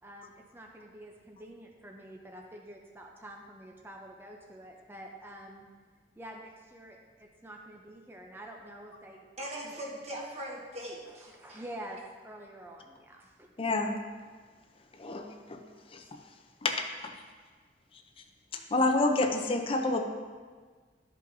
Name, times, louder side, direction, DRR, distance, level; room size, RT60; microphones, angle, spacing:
voice 1, 0.0-5.7 6.2-9.3 9.6-9.7 11.2-13.5, right 1 dB, 15° right, 0 dB, 0.6 m, -47 dB
voice 2, 9.4-11.6, right 1 dB, 40° right, -3 dB, 1.5 m, -40 dB
voice 3, 13.6-14.0 14.9-15.6 15.9-16.2 16.6-17.1 18.5-20.0, left 2 dB, 30° left, 4 dB, 0.6 m, -29 dB
12.5 x 5.3 x 2.7 m, 1.5 s
head